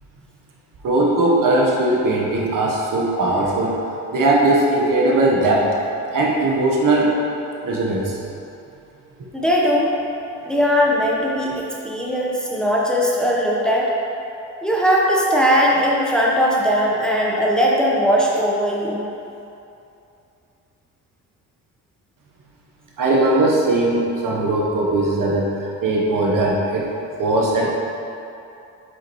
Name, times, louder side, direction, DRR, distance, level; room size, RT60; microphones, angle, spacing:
voice 1, 0.8-3.8 4.1-5.7 6.1-7.2 7.6-8.2 23.0-26.9 27.2-27.9, right 2 dB, 55° right, -3 dB, 1.2 m, -19 dB
voice 2, 9.3-9.9 10.4-13.9 14.6-19.0, equal, ahead, -4 dB, 1.0 m, -19 dB
6.2 x 5.1 x 3.1 m, 2.7 s
supercardioid pair, 55°, 40 cm